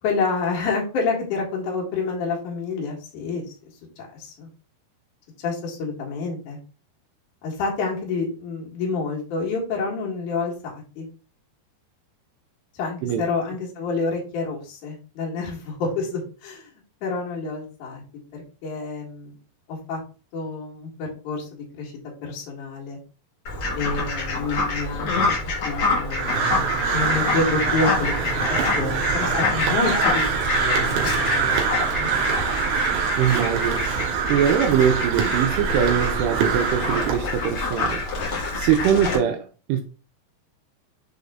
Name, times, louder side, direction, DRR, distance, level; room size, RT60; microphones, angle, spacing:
voice 1, 0.0-3.4 4.1-4.5 5.4-6.6 7.4-11.1 12.7-16.7 17.0-18.0 18.3-19.3 19.7-20.0 20.3-21.9 22.2-23.0 23.7-25.4 25.6-28.4 28.8-30.2 30.6-32.1, left 4 dB, 50° left, 2.8 m, -28 dB
Fowl, 23.4-39.1, left 3 dB, 65° left, 1.2 m, -27 dB
Crow, 26.1-37.2, right 6 dB, 65° right, 3.1 m, -24 dB
voice 2, 33.2-33.9 34.3-38.0 38.5-39.8, right 8 dB, 90° right, 2.4 m, -22 dB
6.6 x 4.0 x 3.6 m
omnidirectional pair, 5.4 m